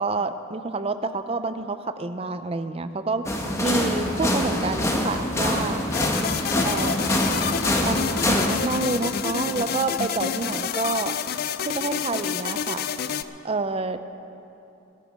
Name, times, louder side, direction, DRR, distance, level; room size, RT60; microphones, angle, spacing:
voice 1, 0.0-5.8 6.6-7.1 7.8-11.2 11.6-12.8 13.4-14.0, right 3 dB, 25° right, 11 dB, 0.5 m, -28 dB
sound 1, 3.3-8.5, left 1 dB, 15° left, 1.1 m, -25 dB
sound 2, 5.9-13.2, left 7 dB, 45° left, 0.4 m, -28 dB
21.0 x 8.9 x 5.2 m, 2.8 s
head